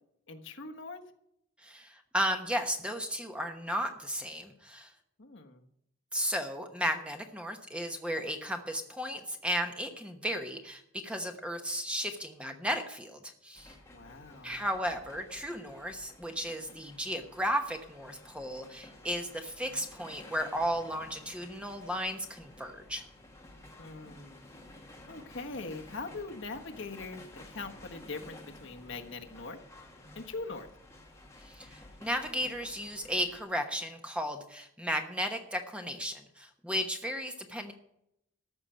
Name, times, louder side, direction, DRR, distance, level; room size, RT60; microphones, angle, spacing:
voice 1, 0.3-1.0 5.2-5.6 13.9-14.6 23.8-24.5 25.1-29.6 30.1-30.7, left 3 dB, 55° left, 4 dB, 1.3 m, -42 dB
voice 2, 1.6-4.9 6.1-13.7 14.4-23.0 31.4-37.7, equal, 5° right, 5 dB, 1.1 m, -34 dB
sound 1, 13.5-33.4, left 1 dB, 15° left, 1.8 m, -53 dB
14.0 x 5.8 x 8.9 m, 0.78 s
head